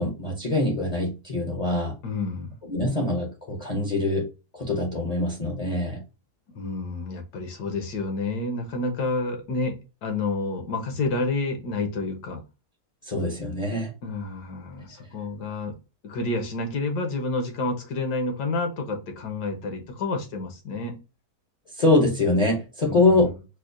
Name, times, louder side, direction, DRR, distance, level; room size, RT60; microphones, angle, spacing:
voice 1, 0.0-2.0 2.7-4.3 4.5-6.0 13.0-13.9 21.7-23.3, left 2 dB, 45° left, 0.5 m, -24 dB
voice 2, 2.0-2.5 6.5-12.4 14.0-15.8 16.0-21.0 22.8-23.3, left 3 dB, 80° left, 1.5 m, -29 dB
4.7 x 2.1 x 2.5 m
omnidirectional pair, 1.7 m